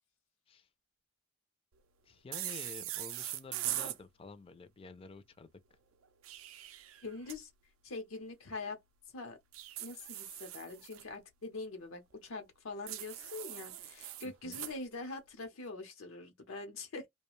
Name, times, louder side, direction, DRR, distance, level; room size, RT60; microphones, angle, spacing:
voice 1, 2.0-5.5 14.2-14.6, left 4 dB, 25° left, 0.4 m, -50 dB
sound 1, 2.3-4.0 6.0-7.4 9.5-11.0 12.9-14.7, right 14 dB, 85° right, 0.4 m, -41 dB
voice 2, 7.0-7.5 7.8-8.8 9.1-9.4 9.8-17.1, left 3 dB, 90° left, 0.7 m, -44 dB
2.4 x 2.2 x 3.0 m
head